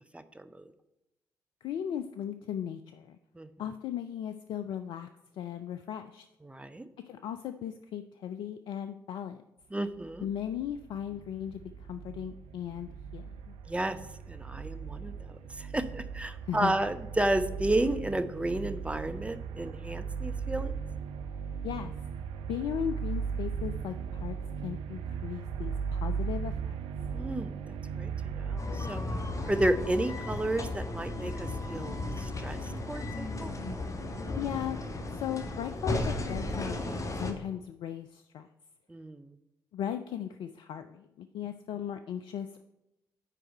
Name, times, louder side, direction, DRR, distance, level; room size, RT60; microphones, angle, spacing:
voice 1, 0.1-0.7 3.4-3.5 6.4-6.9 9.7-10.3 13.7-14.0 14.3-15.1 15.5-20.7 27.1-27.6 28.0-29.0 29.4-33.5 38.9-39.3, right 1 dB, 10° right, 10 dB, 0.7 m, -32 dB
voice 2, 1.6-3.2 3.6-5.1 5.3-6.3 7.0-9.4 10.2-13.5 16.4-16.8 21.6-21.9 22.5-24.4 24.6-26.8 34.3-34.8 35.1-38.5 39.7-42.6, left 9 dB, 55° left, 9 dB, 0.4 m, -37 dB
sound 1, 10.0-28.6, right 6 dB, 60° right, 0.5 m, -37 dB
sound 2, 28.6-37.3, left 2 dB, 30° left, 1.3 m, -35 dB
9.0 x 4.7 x 5.4 m, 0.92 s
figure-of-eight pair, 40°, 10 cm